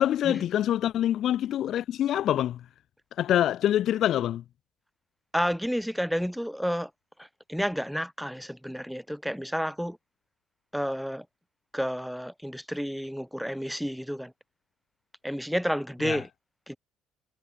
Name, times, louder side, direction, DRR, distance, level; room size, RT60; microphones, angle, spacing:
voice 1, 0.0-2.6 3.2-4.4 16.0-16.2, left 11 dB, 50° left, 1.3 m, -25 dB
voice 2, 5.3-6.9 7.2-10.0 10.7-11.3 11.7-14.3 15.2-16.3 16.7-16.8, equal, ahead, 3.3 m, -30 dB
figure-of-eight pair, 50°, 0 cm